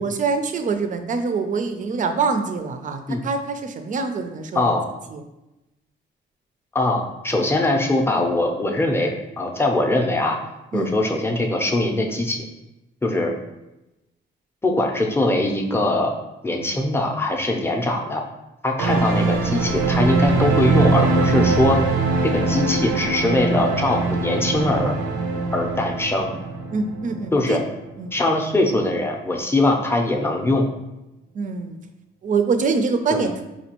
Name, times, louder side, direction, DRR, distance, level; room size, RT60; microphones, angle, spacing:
voice 1, 0.0-4.7 5.1-5.2 10.7-10.9 26.7-27.6 28.0-28.1 31.3-31.8 32.2-33.4, right 4 dB, 40° right, 7 dB, 0.4 m, -24 dB
voice 2, 4.5-4.9 6.7-10.4 10.7-12.4 13.0-13.3 14.6-16.1 16.4-18.2 18.6-21.8 22.2-24.9 25.5-26.3 27.3-27.6 28.1-30.7 33.1-33.3, left 2 dB, 10° left, 1 dB, 0.5 m, -21 dB
sound 1, 18.8-27.9 28.2-28.3, right 3 dB, 85° right, 0.5 m, -22 dB
4.3 x 2.3 x 2.9 m, 0.96 s
cardioid pair, 90°, 20 cm